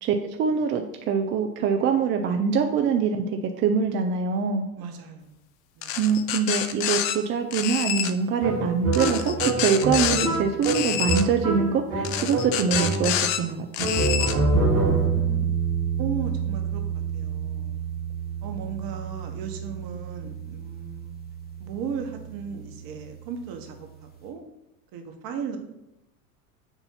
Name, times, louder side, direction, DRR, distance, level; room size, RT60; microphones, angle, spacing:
voice 1, 0.0-4.7 6.0-13.9, right 6 dB, 25° right, 4 dB, 0.4 m, -24 dB
voice 2, 4.8-5.5 5.8-6.0 14.5-15.5 16.0-17.8 18.4-21.2 21.6-24.4 24.9-25.6, right 6 dB, 50° right, 4 dB, 1.3 m, -36 dB
sound 1, 5.8-7.2 7.5-8.1 8.9-10.3 10.6-11.2 12.0-13.4 13.7-14.3, left 10 dB, 50° left, 0.7 m, -27 dB
sound 2, 8.4-13.4 13.8-15.3, right 2 dB, 75° right, 2.4 m, -26 dB
sound 3, 14.5-23.5, right 6 dB, 20° left, 0.9 m, -29 dB
7.1 x 2.6 x 5.6 m, 0.87 s
hypercardioid pair, 95°, 46 cm